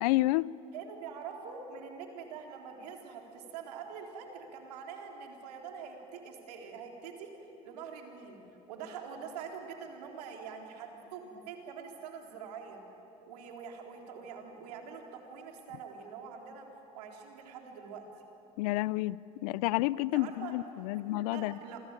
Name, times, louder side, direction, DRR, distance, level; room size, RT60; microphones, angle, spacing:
voice 1, 0.0-0.5 18.6-21.6, left 18 dB, 75° left, 0.6 m, -30 dB
voice 2, 0.7-7.3 7.6-8.4 8.7-12.8 13.2-16.7 16.9-18.1 20.1-21.8, right 6 dB, 80° right, 3.8 m, -45 dB
28.0 x 23.5 x 9.0 m
hypercardioid pair, 65°, 20 cm